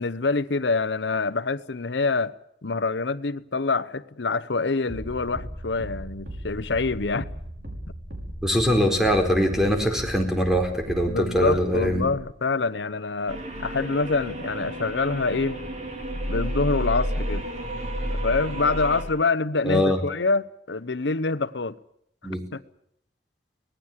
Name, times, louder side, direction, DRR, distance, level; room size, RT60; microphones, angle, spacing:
voice 1, 0.0-2.3 2.6-7.3 11.1-15.6 16.3-17.5 18.1-21.8 22.5-22.6, left 3 dB, 85° left, 0.9 m, -26 dB
sound 1, 4.9-12.3, equal, 60° right, 6.1 m, -37 dB
voice 2, 8.4-12.1 19.6-20.0 22.2-22.4, equal, 5° right, 4.4 m, -22 dB
sound 2, 13.3-19.0, equal, 40° right, 3.8 m, -31 dB
25.0 x 19.0 x 7.5 m
head